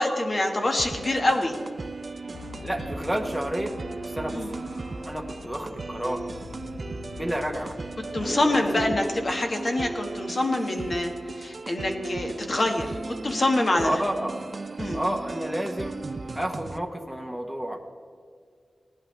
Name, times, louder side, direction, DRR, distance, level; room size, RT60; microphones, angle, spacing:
voice 1, 0.0-1.6 4.3-4.5 8.1-11.1 11.4-13.0 13.2-14.0 14.8-15.0, left 1 dB, 40° left, 3 dB, 1.5 m, -25 dB
sound 1, 0.8-16.8, right 3 dB, 40° right, 0.4 m, -37 dB
sound 2, 2.3-10.4, left 3 dB, 90° left, 0.8 m, -44 dB
voice 2, 2.6-4.6 5.1-6.3 7.2-7.8 8.2-9.0 13.8-14.4 14.9-16.0 16.3-17.8, right 1 dB, ahead, 3 dB, 1.0 m, -30 dB
18.0 x 11.0 x 3.3 m, 2.1 s
wide cardioid pair, 120°, 0 cm